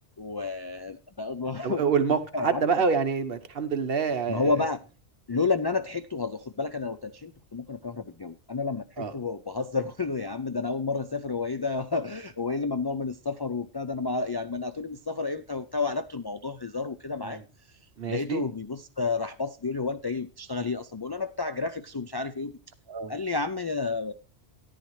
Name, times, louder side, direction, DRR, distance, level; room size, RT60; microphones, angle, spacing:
voice 1, 0.2-1.9 2.3-2.9 4.3-4.8 5.3-17.4 18.1-22.6 23.1-24.1, left 4 dB, 40° left, 0.3 m, -31 dB
voice 2, 1.6-4.7 9.0-9.1 17.2-17.4 18.0-18.4 22.9-23.1, right 5 dB, 60° right, 1.1 m, -27 dB
14.0 x 10.0 x 3.1 m
omnidirectional pair, 1.1 m